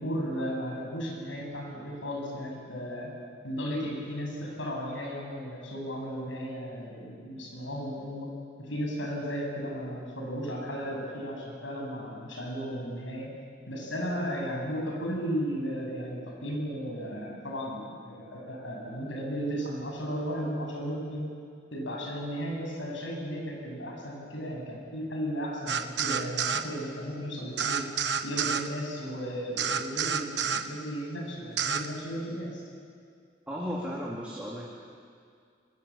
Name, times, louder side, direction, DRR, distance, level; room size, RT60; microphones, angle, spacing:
voice 1, 0.0-3.1 3.4-8.3 8.6-13.3 13.7-21.3 21.7-27.9 28.2-32.6, equal, 80° left, 0 dB, 7.2 m, -35 dB
sound 1, 25.7-26.7 27.6-28.7 29.6-30.7 31.6-31.9, right 7 dB, 65° right, 1.1 m, -29 dB
voice 2, 33.5-34.6, equal, 5° right, -4 dB, 2.7 m, -34 dB
26.0 x 21.0 x 8.6 m, 2.2 s
head